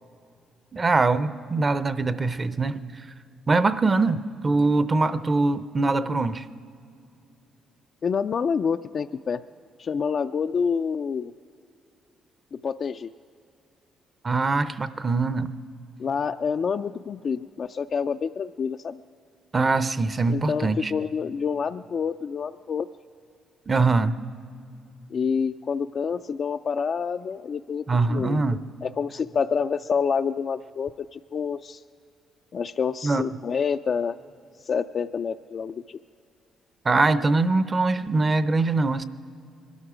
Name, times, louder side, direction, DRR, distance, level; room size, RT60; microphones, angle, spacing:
voice 1, 0.7-3.0 3.5-6.4 14.2-15.5 19.5-20.9 23.7-24.2 27.9-28.6 33.0-33.2 36.8-39.0, right 3 dB, 30° right, 14 dB, 0.6 m, -23 dB
voice 2, 8.0-9.4 9.8-11.3 12.6-13.1 16.0-19.0 20.3-22.9 25.1-27.8 28.1-28.4 28.8-31.8 32.5-34.2 34.6-36.0, left 6 dB, 50° left, 7 dB, 0.3 m, -27 dB
22.0 x 12.5 x 5.0 m, 2.4 s
cardioid pair, 90°, 0 cm